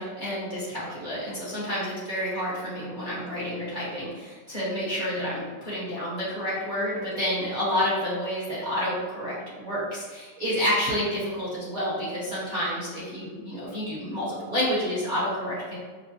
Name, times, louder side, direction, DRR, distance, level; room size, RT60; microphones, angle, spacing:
voice 1, 0.0-15.8, equal, 30° right, -10 dB, 1.0 m, -29 dB
5.7 x 2.1 x 2.9 m, 1.5 s
omnidirectional pair, 2.1 m